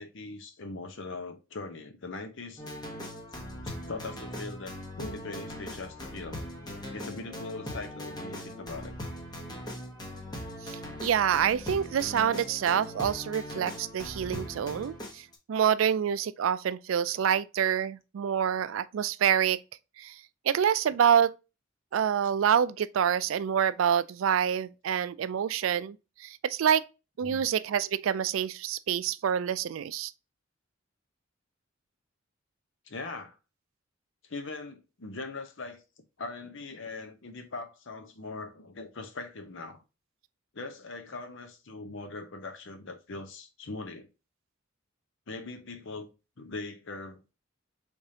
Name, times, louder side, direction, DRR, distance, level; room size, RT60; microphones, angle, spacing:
voice 1, 0.0-2.6 3.6-6.4 6.9-8.9 20.9-21.0 27.2-27.4 32.9-33.4 34.3-35.8 36.2-39.8 40.5-44.1 45.3-46.1 46.4-47.3, left 3 dB, 65° left, 0.8 m, -41 dB
sound 1, 2.6-15.3, equal, 20° left, 1.1 m, -40 dB
voice 2, 10.6-19.6 20.0-21.3 21.9-26.8 27.2-30.1, right 8 dB, 80° right, 0.3 m, -27 dB
5.0 x 3.5 x 2.7 m
head